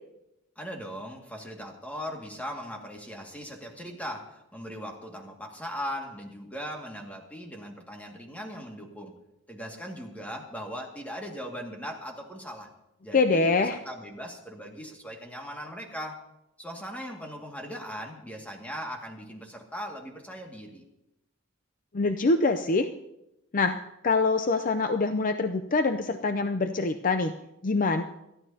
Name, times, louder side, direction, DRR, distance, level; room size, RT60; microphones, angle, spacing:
voice 1, 0.6-9.1 9.5-12.7 13.0-16.2 16.6-20.8, equal, 5° left, 1 dB, 2.0 m, -39 dB
voice 2, 13.1-13.8 21.9-22.9 23.5-23.8 24.0-27.3 27.6-28.0, left 3 dB, 40° left, 8 dB, 0.5 m, -24 dB
27.5 x 11.0 x 2.8 m, 0.89 s
head